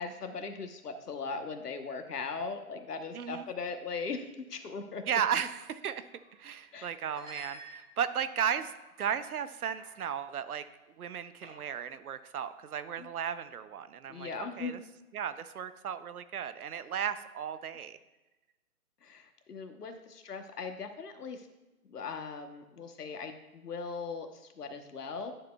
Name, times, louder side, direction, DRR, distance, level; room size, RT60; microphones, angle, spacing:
voice 1, 0.0-5.0 6.7-6.9 13.0-13.1 14.1-14.8 19.0-21.5 21.9-25.3, left 4 dB, 90° left, 7 dB, 1.1 m, -39 dB
voice 2, 3.1-3.5 5.1-6.0 6.4-8.7 9.0-10.6 11.0-14.8 15.1-18.0, right 8 dB, 75° right, 13 dB, 0.6 m, -35 dB
sound 1, 6.1-6.4 7.0-8.2 8.8-9.2 9.8-10.0 10.3-10.5 11.4-11.9, right 1 dB, 10° right, 1.1 m, -50 dB
11.0 x 6.7 x 2.3 m, 1.1 s
hypercardioid pair, 160°, 45 cm